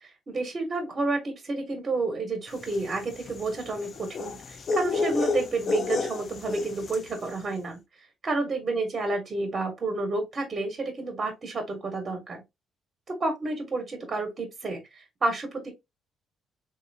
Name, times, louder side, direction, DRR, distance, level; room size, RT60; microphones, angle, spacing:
voice 1, 0.3-7.8 8.2-12.4 13.1-15.7, right 2 dB, 35° right, 1.2 m, -30 dB
sound 1, 2.6-7.2, left 4 dB, 45° left, 0.5 m, -30 dB
3.7 x 2.7 x 2.7 m
cardioid pair, 105°, 0 cm